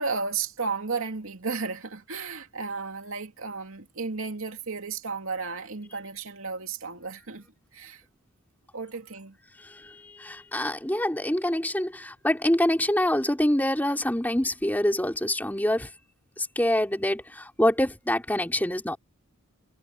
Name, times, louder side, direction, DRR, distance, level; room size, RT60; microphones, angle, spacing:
voice 1, 0.0-7.5 7.7-8.0 8.7-9.4, right 4 dB, 75° right, 2.5 m, -33 dB
voice 2, 9.6-15.9 16.4-19.0, left 1 dB, 10° left, 3.2 m, -26 dB
head